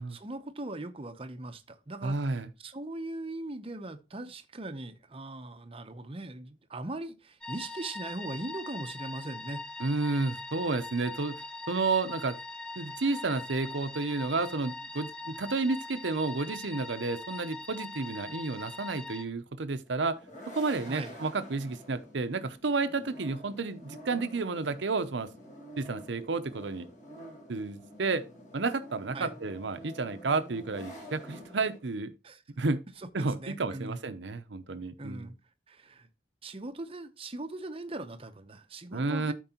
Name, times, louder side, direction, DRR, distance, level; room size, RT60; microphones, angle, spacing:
voice 1, 0.0-9.6 20.9-21.1 29.1-29.3 32.2-32.4 33.4-34.0 35.0-35.3 35.7-36.1 36.4-39.3, right 2 dB, 30° right, 0.7 m, -40 dB
voice 2, 2.0-2.5 9.8-12.4 12.8-20.2 20.5-25.3 25.8-26.9 27.5-28.2 28.5-32.1 32.6-32.8 33.1-35.3 38.9-39.3, right 3 dB, 75° right, 0.7 m, -31 dB
sound 1, 7.4-19.2, left 3 dB, 5° left, 0.6 m, -42 dB
sound 2, 19.9-31.8, equal, 40° left, 2.0 m, -48 dB
12.5 x 4.6 x 2.9 m
head